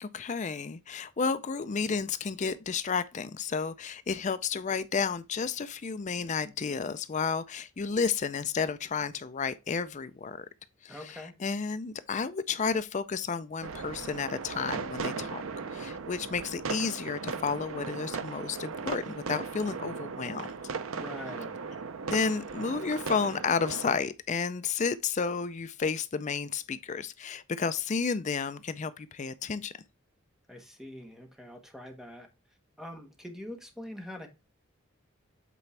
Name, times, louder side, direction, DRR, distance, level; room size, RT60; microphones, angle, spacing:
voice 1, 0.0-10.5 10.8-15.4 15.7-20.5 22.0-29.7, left 5 dB, 35° left, 0.4 m, -32 dB
voice 2, 10.9-11.3 20.9-21.6 30.5-32.3 32.8-34.3, left 1 dB, ahead, 1.4 m, -44 dB
sound 1, 13.6-24.0, right 5 dB, 80° right, 0.6 m, -37 dB
8.3 x 4.4 x 3.2 m
head